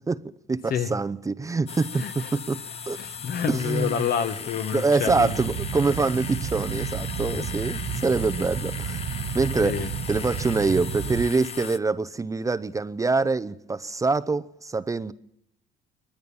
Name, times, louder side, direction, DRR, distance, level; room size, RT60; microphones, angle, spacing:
voice 1, 0.5-2.6 2.9-3.0 3.5-4.1 4.7-9.0 9.3-15.1, right 3 dB, 20° right, 0.7 m, -25 dB
sound 1, 1.7-11.8, left 7 dB, 35° left, 0.9 m, -37 dB
voice 2, 3.0-5.3 7.3-7.4 9.6-9.9, left 8 dB, 60° left, 1.8 m, -28 dB
sound 2, 5.1-11.3, right 8 dB, 55° right, 1.2 m, -32 dB
23.0 x 20.5 x 7.1 m
cardioid pair, 110°, 17 cm